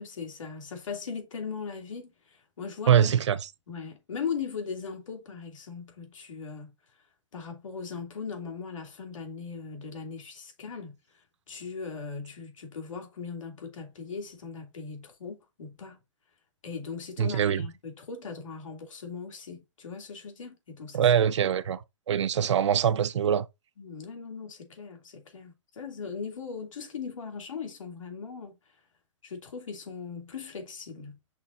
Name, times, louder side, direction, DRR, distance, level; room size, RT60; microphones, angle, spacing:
voice 1, 0.0-3.1 3.7-6.7 7.3-10.9 11.5-16.0 16.6-21.1 21.4-21.5 23.8-28.5 29.2-31.2, left 5 dB, 85° left, 2.6 m, -39 dB
voice 2, 2.9-3.4 17.2-17.6 20.9-21.8 22.1-23.4, right 9 dB, 65° right, 0.6 m, -23 dB
7.0 x 5.8 x 2.6 m
hypercardioid pair, 175°, 16 cm